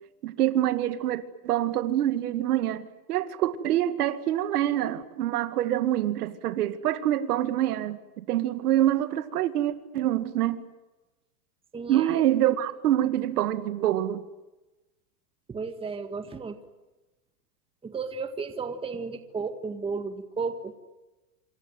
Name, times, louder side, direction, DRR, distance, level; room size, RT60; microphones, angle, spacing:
voice 1, 0.2-10.6 11.9-14.2, right 12 dB, 80° right, 2.3 m, -26 dB
voice 2, 11.7-12.2 15.5-16.6 17.8-20.7, right 4 dB, 10° right, 1.8 m, -34 dB
27.0 x 27.0 x 7.9 m
supercardioid pair, 145°, 45 cm